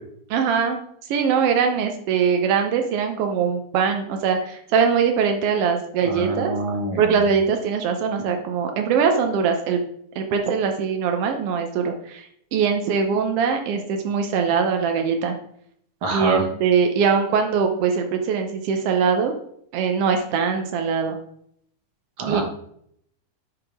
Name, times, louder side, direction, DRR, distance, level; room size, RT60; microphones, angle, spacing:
voice 1, 0.3-0.8 1.1-6.5 7.0-9.8 10.1-15.3 16.1-19.3 19.7-21.2 22.3-22.4, right 6 dB, 85° right, 5 dB, 1.3 m, -22 dB
voice 2, 6.0-7.2 16.0-16.4 22.2-22.4, right 2 dB, 50° right, 1 dB, 1.7 m, -26 dB
11.5 x 5.0 x 3.5 m, 0.69 s
omnidirectional pair, 3.7 m